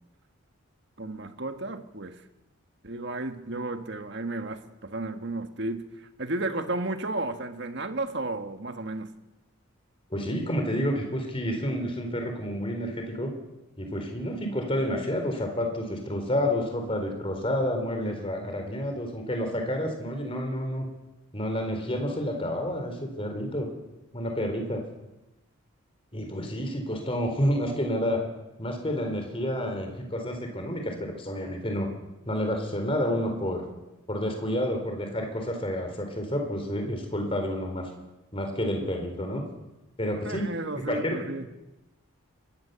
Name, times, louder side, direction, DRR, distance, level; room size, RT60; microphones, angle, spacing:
voice 1, 1.0-2.2 2.8-9.1 40.2-41.5, right 2 dB, 55° right, 7 dB, 1.6 m, -33 dB
voice 2, 10.1-13.3 13.8-20.9 21.3-23.7 24.1-24.8 26.1-28.2 28.6-31.9 32.3-33.6 34.1-37.9 38.3-39.4 40.0-40.4 40.8-41.2, equal, 25° left, 4 dB, 4.0 m, -29 dB
23.0 x 17.5 x 6.9 m, 1.0 s
head